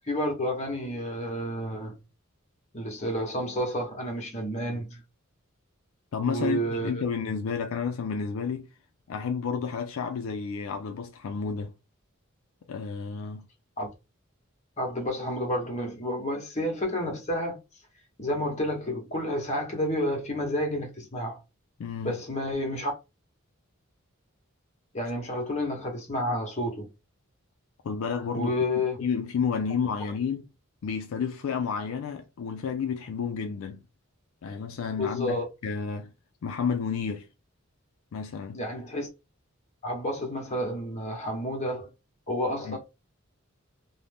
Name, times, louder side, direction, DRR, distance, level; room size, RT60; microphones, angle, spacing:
voice 1, 0.0-2.0 2.7-5.0 6.2-7.0 13.8-13.9 14.8-17.6 18.2-21.4 22.0-22.9 24.9-26.9 28.3-29.0 35.0-35.5 38.5-39.1 39.8-41.9 42.3-42.8, equal, 30° left, 1.0 m, -30 dB
voice 2, 6.1-8.7 9.1-11.7 12.7-13.5 21.8-22.2 27.8-30.5 30.8-33.8 34.4-36.1 36.4-37.3 38.1-38.6 42.7-42.8, left 6 dB, 70° left, 0.4 m, -31 dB
2.6 x 2.0 x 3.3 m
head